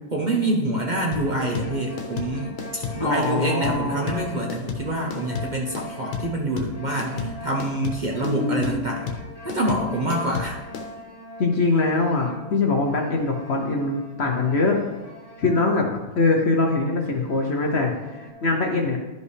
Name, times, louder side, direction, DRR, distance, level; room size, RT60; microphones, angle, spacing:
voice 1, 0.1-9.1 9.4-10.6, right 1 dB, 65° right, -1 dB, 0.4 m, -26 dB
sound 1, 0.9-16.3 16.6-16.7 17.1-18.3, equal, 45° left, 2.2 m, -41 dB
sound 2, 1.1-10.9, left 6 dB, 85° left, 1.7 m, -32 dB
voice 2, 3.0-4.0 8.2-8.9 11.4-14.8 15.4-19.0, left 3 dB, 65° left, 1 dB, 0.6 m, -23 dB
12.0 x 5.4 x 3.3 m, 1.1 s
omnidirectional pair, 2.1 m